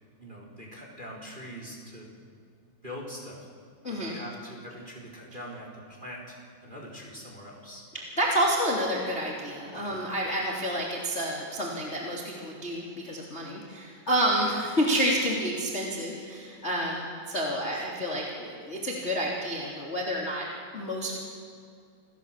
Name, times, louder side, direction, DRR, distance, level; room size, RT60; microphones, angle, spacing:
voice 1, 0.2-2.1 2.8-3.5 3.9-7.8 9.7-10.0 17.7-17.8, equal, 10° right, -1 dB, 3.8 m, -43 dB
voice 2, 3.8-4.2 7.9-20.5 20.7-21.2, equal, 20° left, -3 dB, 2.8 m, -29 dB
28.5 x 16.0 x 7.6 m, 2.3 s
omnidirectional pair, 4.9 m